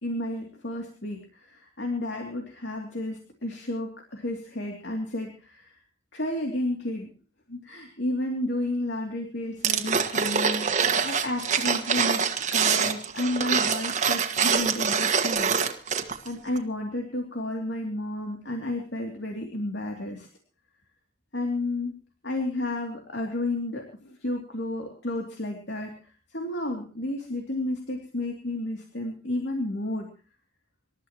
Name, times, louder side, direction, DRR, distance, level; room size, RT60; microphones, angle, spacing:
voice 1, 0.0-5.8 6.1-7.1 7.5-15.5 15.9-20.3 21.3-21.9 22.2-25.9 26.3-30.1, left 1 dB, 90° left, 2 dB, 2.9 m, -32 dB
sound 1, 9.6-16.3 16.6-16.7, right 6 dB, 45° right, 1.6 m, -25 dB
26.5 x 13.0 x 3.1 m, 0.38 s
head